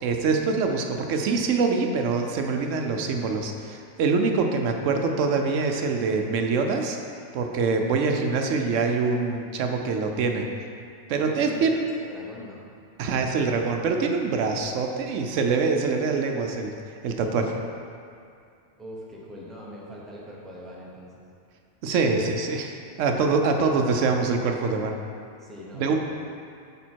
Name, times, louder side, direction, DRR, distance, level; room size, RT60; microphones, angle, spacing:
voice 1, 0.0-7.0 7.3-10.5 11.1-11.8 13.0-16.7 17.0-17.6 21.8-25.0 25.7-25.9, right 4 dB, 85° right, 3 dB, 1.0 m, -24 dB
voice 2, 11.2-12.6 18.8-21.2 25.4-25.9, left 1 dB, ahead, -5 dB, 0.9 m, -42 dB
8.4 x 3.6 x 4.5 m, 2.4 s
omnidirectional pair, 1.3 m